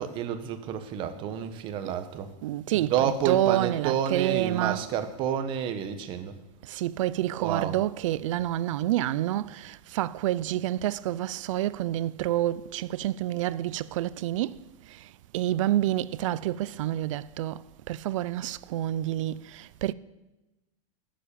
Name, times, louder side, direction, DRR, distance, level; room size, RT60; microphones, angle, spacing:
voice 1, 0.0-2.3 2.7-6.4 7.4-7.8, right 8 dB, 30° right, 1.3 m, -30 dB
voice 2, 2.4-4.9 6.7-14.6 14.9-15.0 15.3-19.9, right 13 dB, 70° right, 0.6 m, -28 dB
18.5 x 7.6 x 8.7 m
supercardioid pair, 175°, 17 cm